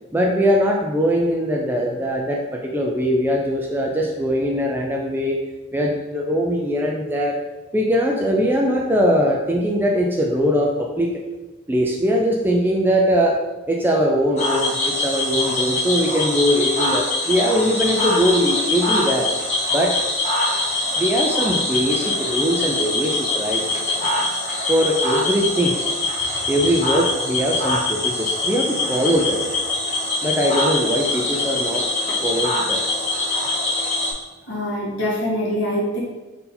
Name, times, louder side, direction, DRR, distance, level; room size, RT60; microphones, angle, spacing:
voice 1, 0.1-5.4 5.7-7.4 7.7-11.2 11.7-13.4 13.7-19.3 19.7-20.0 20.9-23.6 24.7-25.8 26.5-29.4 30.2-31.8 32.2-32.8, equal, 10° right, 0 dB, 0.3 m, -21 dB
Cricket / Frog, 14.4-34.1, left 2 dB, 35° left, 1.0 m, -23 dB
voice 2, 34.5-36.0, equal, 60° left, -6 dB, 1.4 m, -24 dB
3.8 x 2.7 x 4.2 m, 1.1 s
head